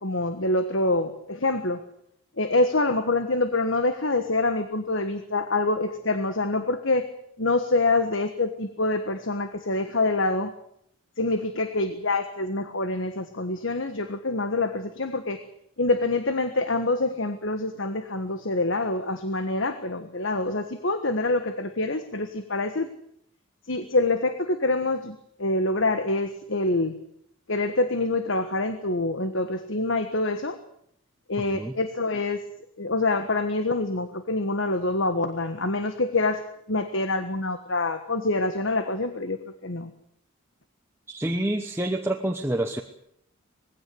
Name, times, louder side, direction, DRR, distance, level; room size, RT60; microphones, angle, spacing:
voice 1, 0.0-1.8 2.4-7.1 7.4-10.5 11.2-15.4 15.8-22.9 23.7-26.9 27.5-30.6 31.3-32.4 32.8-39.9, left 2 dB, 60° left, 9 dB, 1.5 m, -26 dB
voice 2, 41.1-42.8, right 1 dB, 10° right, 3 dB, 1.1 m, -27 dB
21.0 x 16.5 x 9.6 m, 0.71 s
head